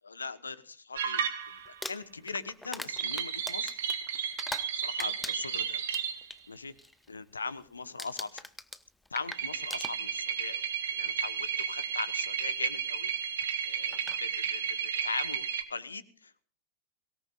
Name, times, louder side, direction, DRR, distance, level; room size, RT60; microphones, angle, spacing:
voice 1, 0.0-1.2 1.7-3.8 4.7-5.8 6.5-6.7 7.1-8.4 9.1-10.6 11.0-16.4, left 4 dB, 75° left, 16 dB, 1.1 m, -40 dB
sound 1, 0.9-1.8 2.9-6.3 9.3-15.6, right 8 dB, 60° right, 1.8 m, -33 dB
Crumpling crinkling, 1.6-4.7 5.0-6.4 6.8-7.1 7.4-7.7 8.0-10.4 11.3-11.4 13.4-13.5 13.9-14.2, left 2 dB, 5° left, 1.0 m, -42 dB
23.5 x 18.0 x 2.4 m, 0.41 s
figure-of-eight pair, 90°, 0 cm